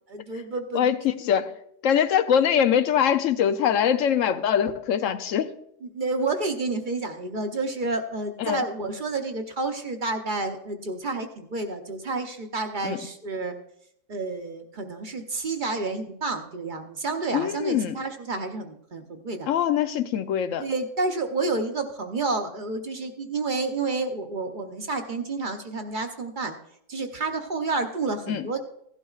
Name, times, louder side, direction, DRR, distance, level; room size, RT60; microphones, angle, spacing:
voice 1, 0.1-0.9 5.9-13.5 14.1-19.5 20.6-26.6 26.9-28.6, right 3 dB, 45° right, 0.8 m, -30 dB
voice 2, 0.7-1.5 1.8-5.5 8.4-8.6 12.8-13.0 17.3-18.0 19.5-20.7 28.3-28.5, left 8 dB, 85° left, 1.0 m, -23 dB
16.5 x 11.5 x 2.4 m
omnidirectional pair, 1.3 m